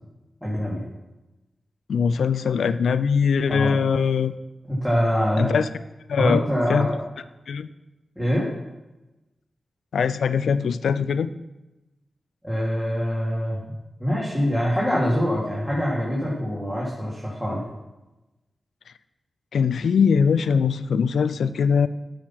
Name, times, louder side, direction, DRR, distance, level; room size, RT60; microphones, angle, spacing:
voice 1, 0.4-0.8 3.5-3.8 4.7-5.6 6.2-6.9 8.1-8.5 12.4-13.6 14.0-17.6, equal, 10° right, -6 dB, 3.1 m, -24 dB
voice 2, 1.9-4.3 5.4-5.7 6.1-6.4 6.7-6.9 7.5-7.7 9.9-11.3 19.5-21.9, left 6 dB, 85° left, 14 dB, 0.4 m, -21 dB
9.0 x 6.4 x 5.9 m, 1.0 s
cardioid pair, 45°, 0 cm